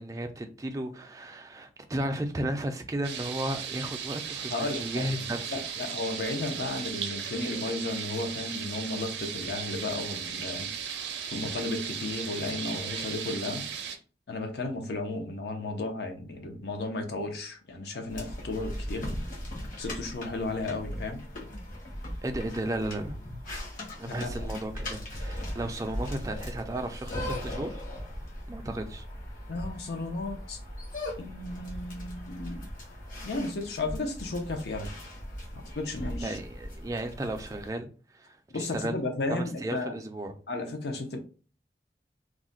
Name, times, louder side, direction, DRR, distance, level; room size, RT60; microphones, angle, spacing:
voice 1, 0.0-5.6 22.2-23.2 24.0-27.8 28.5-29.0 36.2-39.0 39.3-40.3, right 1 dB, 20° right, 0.3 m, -34 dB
sound 1, 3.0-14.0, right 7 dB, 90° right, 0.5 m, -36 dB
voice 2, 4.5-10.7 11.3-13.6 14.3-19.1 19.8-21.2 24.0-24.5 29.5-30.6 31.2-32.7 33.2-35.1 35.5-36.4 38.5-40.0 40.5-41.2, left 2 dB, 70° left, 0.5 m, -34 dB
sound 2, 18.1-37.7, left 1 dB, 45° left, 0.8 m, -39 dB
2.4 x 2.1 x 3.7 m
head